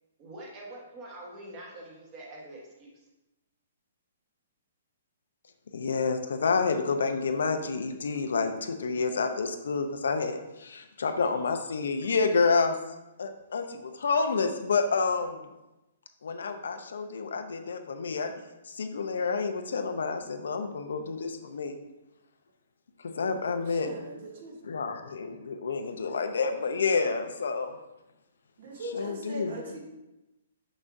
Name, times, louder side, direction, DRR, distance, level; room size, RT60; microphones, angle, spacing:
voice 1, 0.2-2.9, right 1 dB, 20° right, -3 dB, 1.2 m, -45 dB
voice 2, 5.7-12.8 13.2-15.5 16.2-18.3 18.7-21.8 23.0-23.9 24.6-27.7 28.9-29.6, left 4 dB, 85° left, 7 dB, 0.6 m, -29 dB
voice 3, 23.6-24.6 28.6-29.8, right 1 dB, 45° right, 2 dB, 1.1 m, -39 dB
6.2 x 6.1 x 2.6 m, 0.98 s
hypercardioid pair, 170°, 0 cm